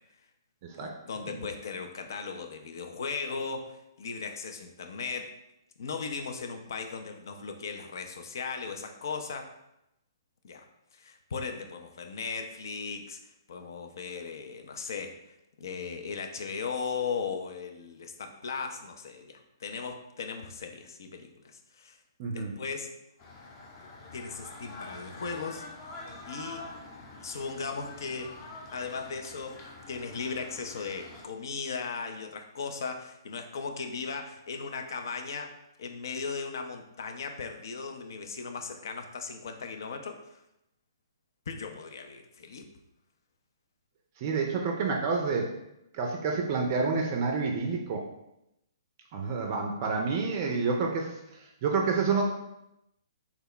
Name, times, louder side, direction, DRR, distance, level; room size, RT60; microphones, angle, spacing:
voice 1, 0.8-5.4 5.8-9.5 10.4-10.7 10.9-13.2 13.5-15.1 15.6-22.0 22.3-22.9 24.1-25.7 26.3-26.7 27.2-28.4 28.7-29.6 29.9-35.5 35.8-40.4 41.5-42.7, left 5 dB, 60° left, 5 dB, 0.4 m, -37 dB
voice 2, 22.2-22.5 44.2-45.5 45.9-48.0 49.1-52.2, right 4 dB, 35° right, 1 dB, 0.4 m, -29 dB
sound 1, 23.2-31.2, left 2 dB, 30° left, 0.7 m, -46 dB
3.3 x 2.1 x 3.8 m, 0.85 s
figure-of-eight pair, 125°, 2 cm